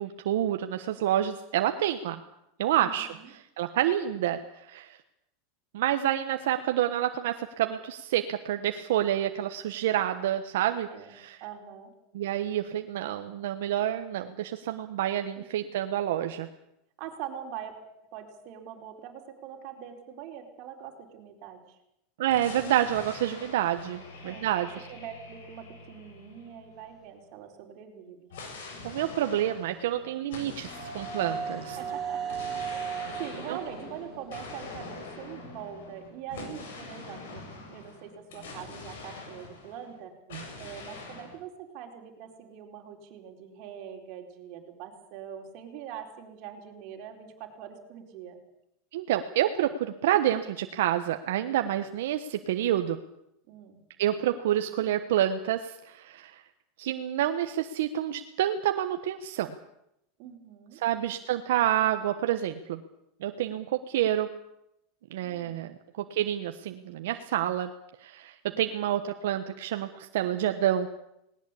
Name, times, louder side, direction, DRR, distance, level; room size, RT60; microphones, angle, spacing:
voice 1, 0.0-2.2 2.6-5.0 5.7-11.4 12.1-16.5 22.2-24.7 28.8-31.8 33.5-33.6 40.3-40.4 48.9-53.0 54.0-56.4 56.8-59.6 60.8-62.8 63.2-64.3 65.1-67.7 68.0-70.9, right 12 dB, 75° right, 7 dB, 1.2 m, -28 dB
voice 2, 2.8-3.3 10.9-11.1 11.4-11.9 17.0-17.7 18.1-21.8 24.2-28.3 31.8-32.4 32.7-32.9 33.2-37.4 37.7-40.1 40.6-48.4 53.5-53.8 60.2-60.8 63.4-63.6 68.4-68.6, right 9 dB, 40° right, 1 dB, 4.5 m, -43 dB
sound 1, 22.3-27.0 28.3-39.9 40.3-41.4, left 3 dB, 85° left, 7.7 m, -44 dB
sound 2, 29.8-35.7, right 6 dB, 10° right, 7.0 m, -37 dB
19.5 x 19.0 x 8.5 m, 0.81 s
supercardioid pair, 165°, 0 cm